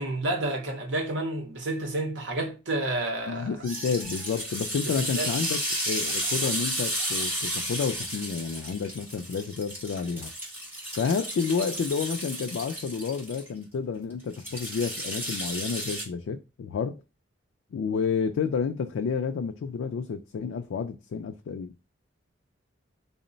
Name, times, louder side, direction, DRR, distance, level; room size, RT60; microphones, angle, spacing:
voice 1, 0.0-3.6 4.8-5.3, right 2 dB, 65° right, 0.8 m, -30 dB
sound 1, 3.0-4.3 5.4-5.5 6.0-6.5 7.0-8.1, right 3 dB, 40° right, 1.0 m, -44 dB
voice 2, 3.3-5.6 5.9-10.3 11.0-17.0 17.7-21.7, left 5 dB, 80° left, 0.3 m, -30 dB
sound 2, 3.7-13.5 14.3-16.0, equal, 10° right, 1.2 m, -33 dB
3.7 x 2.1 x 3.8 m
head